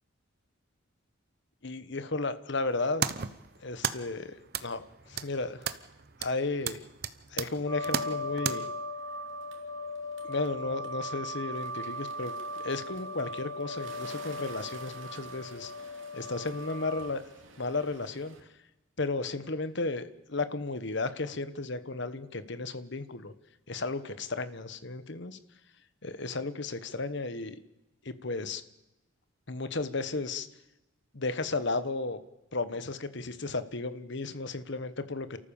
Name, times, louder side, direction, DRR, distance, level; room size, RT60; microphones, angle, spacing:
voice 1, 1.6-3.1 3.6-5.7 6.2-6.8 7.3-8.7 10.2-15.7 16.1-17.3 17.6-18.3 19.0-23.3 23.7-25.4 26.0-27.6 28.0-28.6 29.5-30.5 31.1-32.2 32.5-35.4, left 3 dB, 55° left, 12 dB, 1.2 m, -34 dB
sound 1, 2.7-8.5, right 7 dB, 45° right, 0.9 m, -36 dB
sound 2, 7.7-17.1, left 1 dB, 15° left, 2.1 m, -38 dB
Bird, 9.0-18.4, right 4 dB, 65° right, 2.9 m, -53 dB
29.5 x 14.0 x 7.1 m, 0.99 s
head